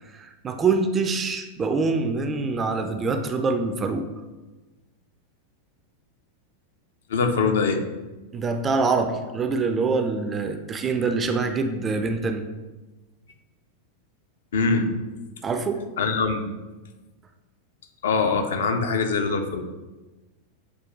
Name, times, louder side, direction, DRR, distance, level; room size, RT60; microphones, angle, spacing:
voice 1, 0.2-4.1 8.3-12.4 15.4-15.9, right 4 dB, 20° right, 6 dB, 0.3 m, -25 dB
voice 2, 7.1-7.8 14.5-14.9 16.0-16.5 18.0-19.6, left 4 dB, 60° left, 6 dB, 0.4 m, -23 dB
6.0 x 2.3 x 2.4 m, 1.2 s
figure-of-eight pair, 90°, 0 cm